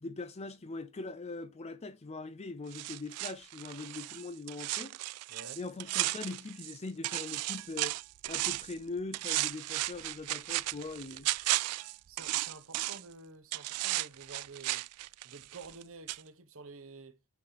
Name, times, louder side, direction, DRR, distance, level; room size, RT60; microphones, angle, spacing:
voice 1, 0.0-4.9 5.6-8.0 8.3-11.3, left 3 dB, 30° left, 0.5 m, -41 dB
sound 1, 2.7-6.8 7.0-8.8 9.1-13.1 13.5-15.8 16.1-16.2, right 17 dB, 85° right, 0.4 m, -35 dB
voice 2, 5.3-5.6 12.1-14.8 15.2-17.3, right 3 dB, 60° right, 1.0 m, -50 dB
9.5 x 3.2 x 5.6 m
head